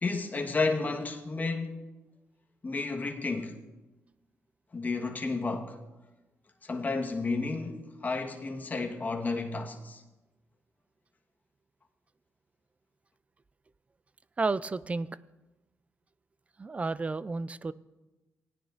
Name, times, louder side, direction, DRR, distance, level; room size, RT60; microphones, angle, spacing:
voice 1, 0.0-1.9 2.6-3.6 4.7-5.8 6.6-10.0, left 3 dB, 35° left, 1.3 m, -32 dB
voice 2, 14.4-15.1 16.6-17.7, right 3 dB, 25° right, 0.4 m, -31 dB
18.5 x 10.0 x 2.5 m
cardioid pair, 85°, 5 cm